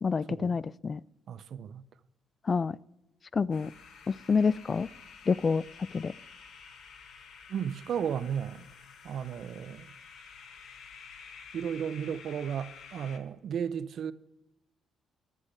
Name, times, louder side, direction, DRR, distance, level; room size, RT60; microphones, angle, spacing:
voice 1, 0.0-1.0 2.5-2.8 3.3-3.7 4.1-4.9 5.3-5.6 5.9-6.1, left 5 dB, 35° left, 0.3 m, -27 dB
voice 2, 1.3-1.8 7.5-8.6 9.0-9.9 11.5-14.1, right 8 dB, 65° right, 0.6 m, -34 dB
sound 1, 3.5-13.2, left 6 dB, 70° left, 1.4 m, -51 dB
11.0 x 9.8 x 5.0 m
cardioid pair, 90°, 0 cm